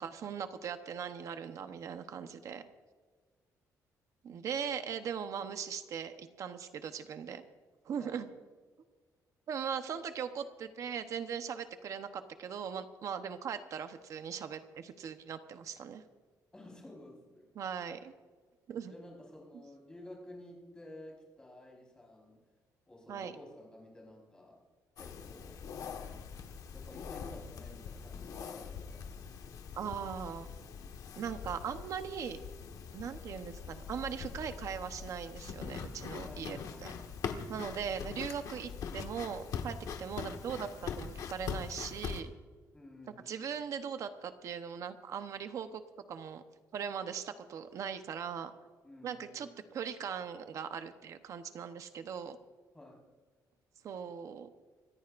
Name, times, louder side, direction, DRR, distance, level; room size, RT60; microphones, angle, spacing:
voice 1, 0.0-2.6 4.2-7.4 7.8-8.3 9.5-16.0 17.6-18.1 18.7-18.9 23.1-23.3 29.7-30.5 31.2-32.4 32.9-36.9 37.5-42.3 43.3-45.8 46.1-46.4 46.7-48.5 49.0-52.4 53.8-54.5, right 7 dB, 50° right, 8 dB, 0.9 m, -39 dB
voice 2, 16.5-17.5 18.9-22.4 22.9-24.6 25.0-25.6 26.7-29.1 36.2-37.2 37.6-37.9 42.7-43.6 48.8-49.5 52.7-53.1, left 1 dB, 10° left, -2 dB, 4.5 m, -52 dB
sound 1, 25.0-42.2, left 6 dB, 60° left, 1.4 m, -43 dB
26.0 x 14.5 x 2.6 m, 1.4 s
cardioid pair, 170°, 7 cm